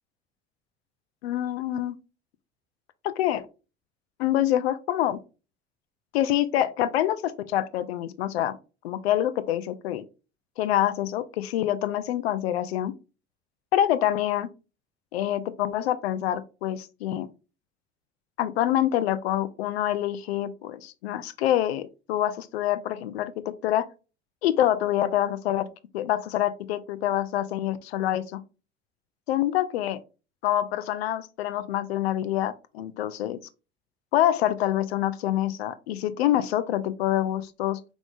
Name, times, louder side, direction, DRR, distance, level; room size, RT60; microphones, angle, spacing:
voice 1, 1.2-2.0 3.0-3.5 4.2-5.2 6.1-8.6 8.8-10.0 10.6-12.9 13.7-14.5 15.1-17.3 18.4-23.9 24.4-25.7 25.9-28.4 29.3-30.0 30.4-33.4 34.1-37.8, left 12 dB, 65° left, 0.6 m, -26 dB
5.0 x 3.6 x 2.4 m
figure-of-eight pair, 60°, 33 cm